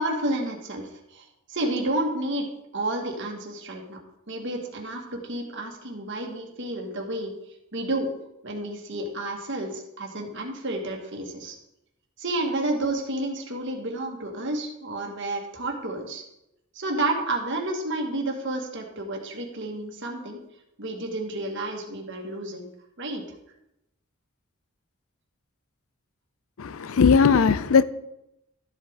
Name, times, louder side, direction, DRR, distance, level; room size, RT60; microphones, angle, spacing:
voice 1, 0.0-2.5 2.7-4.0 4.3-7.3 7.7-8.1 8.4-11.6 12.2-16.2 16.7-20.4 20.8-22.7 23.0-23.2, right 1 dB, 55° right, 1.8 m, -30 dB
voice 2, 26.6-27.8, left 5 dB, 65° left, 0.5 m, -18 dB
12.5 x 8.0 x 3.6 m
head